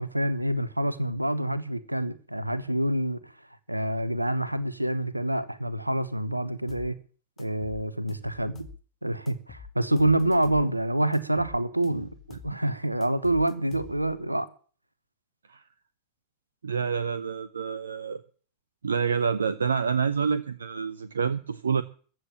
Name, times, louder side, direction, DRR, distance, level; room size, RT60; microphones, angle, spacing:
voice 1, 0.0-3.3 3.7-7.0 7.4-8.7 9.0-12.2 12.4-14.5, right 1 dB, 85° right, 1.0 m, -27 dB
sound 1, 6.7-6.9 7.4-8.8 9.3-10.7 11.1-12.6 13.0-14.2, left 5 dB, 25° left, 1.8 m, -47 dB
voice 2, 16.6-18.2 18.8-21.8, right 6 dB, 70° right, 0.6 m, -27 dB
15.0 x 7.6 x 8.6 m
figure-of-eight pair, 90°, 0 cm